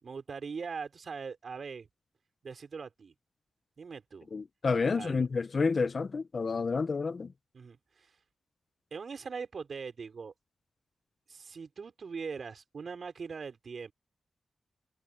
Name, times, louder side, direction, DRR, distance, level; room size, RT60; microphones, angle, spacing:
voice 1, 0.0-1.9 2.4-3.1 3.8-4.3 4.7-5.3 7.5-8.1 8.9-10.3 11.3-13.9, right 5 dB, 65° right, 4.8 m, -41 dB
voice 2, 4.3-7.3, left 4 dB, 55° left, 0.9 m, -29 dB
cardioid pair, 50°, 0 cm